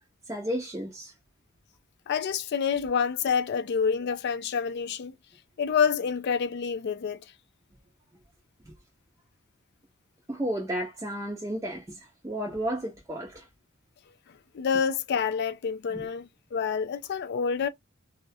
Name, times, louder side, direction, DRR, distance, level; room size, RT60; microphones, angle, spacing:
voice 1, 0.3-1.1 10.3-13.5 15.9-16.1, equal, 15° right, 0.5 m, -33 dB
voice 2, 2.1-5.1 5.6-7.2 14.5-17.7, left 6 dB, 50° left, 0.4 m, -27 dB
2.3 x 2.1 x 2.6 m
head